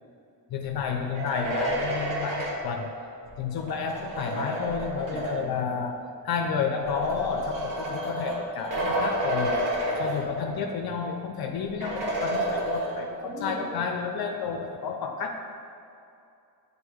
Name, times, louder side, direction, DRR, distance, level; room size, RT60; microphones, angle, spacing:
voice 1, 0.5-2.9 3.4-6.0 6.2-9.6 10.0-15.4, left 6 dB, 60° left, 3 dB, 0.6 m, -31 dB
sound 1, 1.0-5.7 6.6-10.7 11.1-11.2 11.8-13.4, right 1 dB, 50° right, 1.2 m, -31 dB
voice 2, 5.1-5.6 13.2-13.7, equal, 5° right, -5 dB, 1.4 m, -39 dB
7.4 x 3.8 x 3.5 m, 2.5 s
cardioid pair, 95°, 42 cm